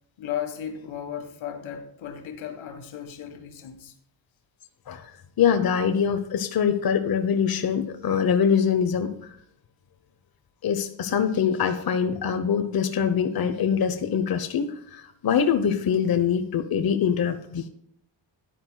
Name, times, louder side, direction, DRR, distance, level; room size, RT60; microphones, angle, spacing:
voice 1, 0.2-3.9, left 9 dB, 90° left, 5 dB, 1.7 m, -35 dB
voice 2, 5.4-9.3 10.6-17.7, left 7 dB, 50° left, 7 dB, 1.0 m, -24 dB
12.5 x 10.0 x 2.3 m, 0.71 s
cardioid pair, 75°, 46 cm